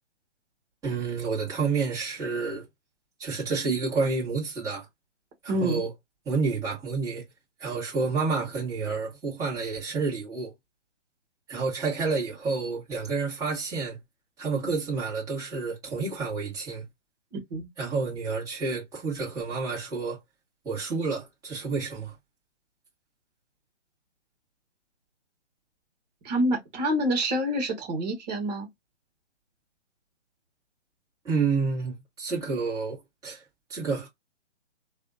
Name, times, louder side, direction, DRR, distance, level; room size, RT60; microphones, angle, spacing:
voice 1, 0.8-2.6 3.2-4.9 5.4-5.9 6.2-7.2 7.6-10.5 11.5-14.0 14.4-16.8 17.8-20.2 20.6-22.1 31.2-33.4 33.7-34.1, right 4 dB, 10° right, 1.7 m, -29 dB
voice 2, 5.5-5.8 17.3-17.7 26.2-28.7, right 1 dB, 35° right, 1.6 m, -27 dB
3.4 x 2.5 x 2.5 m
figure-of-eight pair, 140°, 36 cm